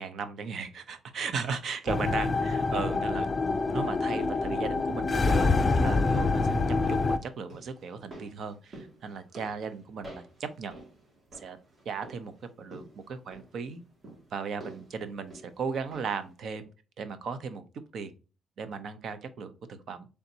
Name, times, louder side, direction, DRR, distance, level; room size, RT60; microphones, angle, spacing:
voice 1, 0.0-3.3 3.7-10.8 11.3-11.6 11.9-13.8 14.3-16.7 17.0-17.7 17.9-18.1 18.6-20.1, right 5 dB, 65° right, 0.6 m, -36 dB
sound 1, 1.9-7.2, left 3 dB, 35° left, 0.4 m, -26 dB
sound 2, 5.6-16.3 16.6-16.7, right 1 dB, 40° right, 1.9 m, -51 dB
4.0 x 3.4 x 2.7 m
cardioid pair, 95°, 0 cm